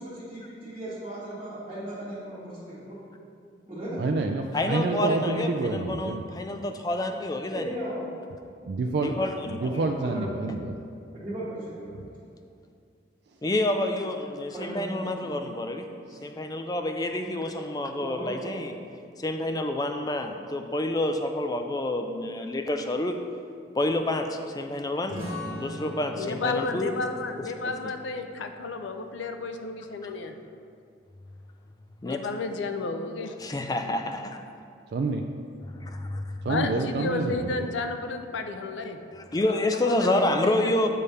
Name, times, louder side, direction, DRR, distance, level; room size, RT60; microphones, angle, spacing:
voice 1, 0.0-3.0 3.7-4.0 7.5-8.0 9.6-9.7 10.0-10.4 11.1-12.1 14.5-15.4 18.0-18.5 40.0-40.5, right 1 dB, 25° right, -12 dB, 1.5 m, -36 dB
voice 2, 4.0-6.2 8.7-9.2 9.5-10.8 11.9-12.1 16.2-16.3 34.9-35.2 36.5-37.7, right 3 dB, 60° right, 3 dB, 0.3 m, -28 dB
voice 3, 4.5-7.7 9.0-9.6 13.4-15.9 16.2-18.7 19.2-23.2 23.7-25.3 25.5-26.9 27.4-27.7 30.0-30.1 32.0-32.3 33.4-34.4 39.1-40.9, left 1 dB, 20° left, 5 dB, 0.3 m, -28 dB
sound 1, 25.1-30.3, equal, 45° left, 1.8 m, -42 dB
voice 4, 26.1-30.4 32.0-33.4 36.5-39.0 39.5-40.7, left 3 dB, 80° left, 6 dB, 0.5 m, -32 dB
8.4 x 3.4 x 5.5 m, 2.3 s
head